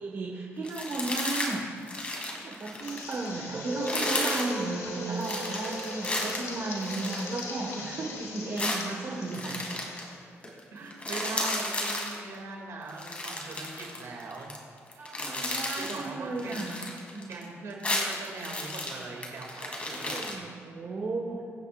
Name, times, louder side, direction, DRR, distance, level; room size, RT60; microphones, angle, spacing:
voice 1, 0.0-1.6 2.4-9.6 11.1-11.3 15.0-16.8 17.0-17.3 19.9-21.4, right 3 dB, 50° right, -2 dB, 1.6 m, -35 dB
sound 1, 0.6-1.6 1.8-3.3 3.7-4.5 5.2-7.8 8.6-10.1 10.4-10.6 10.9-12.2 12.9-14.6 14.9-16.1 16.4-17.4 17.7-20.3, left 1 dB, 25° left, 2.5 m, -33 dB
sound 2, 2.8-10.2, left 4 dB, 85° left, 2.1 m, -42 dB
sound 3, 3.5-9.4, right 2 dB, 35° right, 2.3 m, -39 dB
voice 2, 7.7-8.1 9.1-9.3 10.7-14.5 14.9-16.7 17.3-20.4, right 3 dB, 70° right, 0 dB, 2.6 m, -41 dB
23.0 x 10.0 x 2.6 m, 2.3 s
cardioid pair, 120°, 5 cm